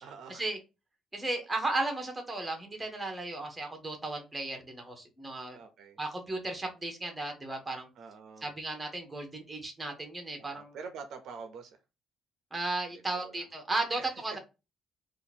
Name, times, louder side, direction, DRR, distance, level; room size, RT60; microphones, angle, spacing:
voice 1, 0.0-0.5 5.5-6.0 8.0-8.5 10.4-11.8 12.9-13.5 14.0-14.1, right 5 dB, 55° right, 0.6 m, -46 dB
voice 2, 1.1-5.6 6.0-7.9 8.4-10.8 12.5-14.4, right 2 dB, 10° right, 0.8 m, -35 dB
2.8 x 2.5 x 4.1 m
cardioid pair, 170°, 0 cm